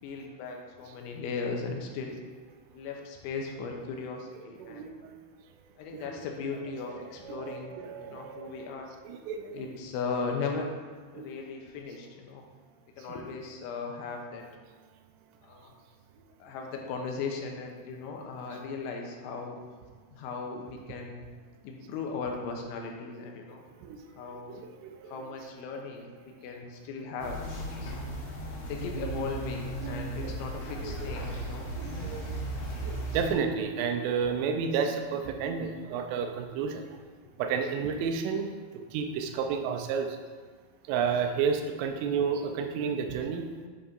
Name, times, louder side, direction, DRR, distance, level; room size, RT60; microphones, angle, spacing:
voice 1, 0.0-2.2 2.7-4.9 5.8-8.9 9.5-10.7 11.1-12.4 13.0-14.5 15.4-15.7 16.4-19.6 20.1-21.3 21.6-23.6 24.2-24.6 25.1-27.9 28.7-31.7 37.3-37.4, left 4 dB, 85° left, 1 dB, 3.0 m, -37 dB
voice 2, 4.6-5.1 5.9-6.2 6.9-8.8 9.0-9.6 11.2-11.3 18.5-18.6 23.8-25.2 29.0-29.4 29.8-30.3 30.8-31.1 31.8-32.3 32.8-36.8 37.4-38.5 38.9-40.2 40.9-43.5, right 6 dB, 85° right, 5 dB, 3.1 m, -32 dB
sound 1, 27.2-33.3, right 1 dB, 60° left, 2.7 m, -36 dB
9.5 x 5.4 x 2.5 m, 1.5 s
omnidirectional pair, 5.5 m